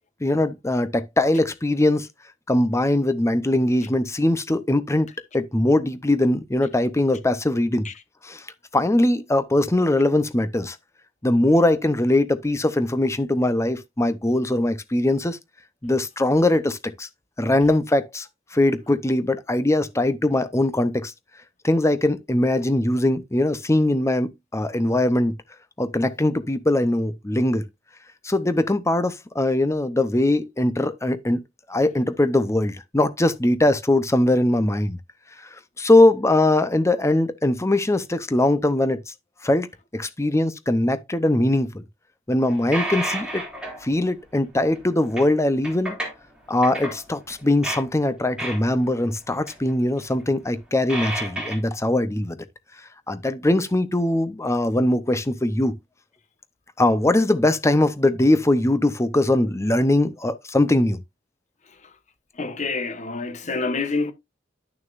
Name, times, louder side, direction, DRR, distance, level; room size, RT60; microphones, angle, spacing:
voice 1, 0.2-2.1 2.5-7.9 8.2-8.4 8.7-10.8 11.2-15.4 15.8-17.1 17.4-18.3 18.5-21.1 21.6-25.3 25.8-27.6 28.2-31.4 31.7-35.0 35.4-35.5 35.8-39.0 39.4-39.7 39.9-41.8 42.3-43.4 43.8-46.0 46.5-52.4 53.1-55.7 56.8-61.0, left 1 dB, 15° left, 0.7 m, -21 dB
sound 1, 42.5-43.9 44.8-45.3 45.6-46.3 46.6-47.0 47.3-47.9 48.4-49.1 49.3-49.7 50.0-50.2 50.9-51.6, right 1 dB, 5° right, 3.3 m, -30 dB
voice 2, 62.3-64.1, left 3 dB, 40° left, 1.1 m, -28 dB
11.0 x 6.5 x 2.5 m
head